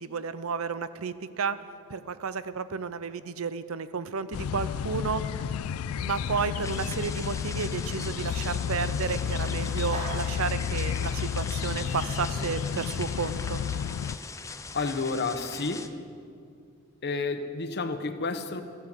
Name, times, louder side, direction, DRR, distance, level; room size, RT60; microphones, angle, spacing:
voice 1, 0.0-1.6 1.9-5.3 6.0-13.6, right 5 dB, 75° right, 14 dB, 0.6 m, -32 dB
sound 1, 4.3-14.2, left 7 dB, 80° left, 0.3 m, -31 dB
sound 2, 6.4-7.0 7.3-12.5, right 1 dB, 35° right, 2.8 m, -44 dB
sound 3, 6.6-15.9, left 4 dB, 15° left, 0.5 m, -41 dB
voice 2, 14.7-16.0 17.0-18.6, left 3 dB, 50° left, 8 dB, 1.0 m, -30 dB
14.5 x 11.0 x 7.8 m, 2.4 s
head